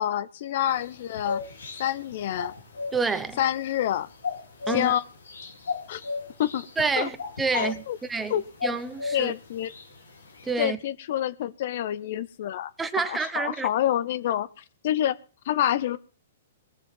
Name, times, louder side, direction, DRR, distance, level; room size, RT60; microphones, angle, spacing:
voice 1, 0.0-1.4 1.8-2.5 3.4-4.1 4.7-5.0 5.4-5.5 5.9-6.0 6.4-6.7 7.0-7.1 7.5-8.0 8.3-8.4 9.1-9.7 10.6-12.7 13.0-15.2 15.5-16.0, left 11 dB, 55° left, 0.7 m, -27 dB
sound 1, 0.7-10.5, left 4 dB, 85° left, 4.6 m, -37 dB
voice 2, 2.9-3.4 4.7-4.9 6.8-7.8 8.1-9.3 10.4-10.8 12.8-13.7, right 4 dB, 10° right, 1.0 m, -28 dB
20.5 x 7.0 x 5.4 m
hypercardioid pair, 130°, 0 cm